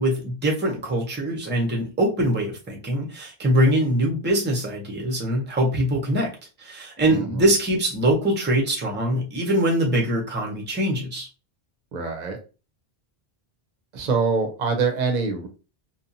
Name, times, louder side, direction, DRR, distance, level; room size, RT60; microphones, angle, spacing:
voice 1, 0.0-6.3 6.6-11.3, right 1 dB, 15° right, 0 dB, 0.6 m, -23 dB
voice 2, 7.1-7.5 11.9-12.4 13.9-15.5, right 4 dB, 50° right, 4 dB, 0.7 m, -24 dB
2.8 x 2.2 x 2.5 m, 0.32 s
omnidirectional pair, 1.1 m